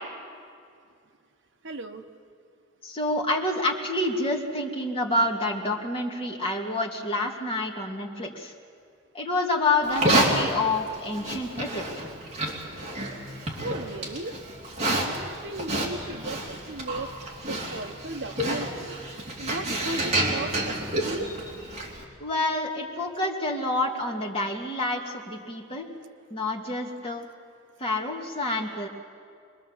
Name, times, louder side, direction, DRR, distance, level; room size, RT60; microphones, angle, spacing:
voice 1, 1.6-2.0 13.6-14.3 15.0-17.1 17.5-19.0 19.4-20.7 21.0-21.3, right 2 dB, 60° right, 7 dB, 1.0 m, -36 dB
voice 2, 2.8-8.5 9.1-12.1 22.2-25.9 26.3-27.2 27.8-28.9, left 2 dB, 25° left, 0 dB, 2.2 m, -28 dB
Livestock farm animals working animals, 9.8-22.0, right 1 dB, 35° right, 3.3 m, -29 dB
25.5 x 20.5 x 7.3 m, 2.3 s
head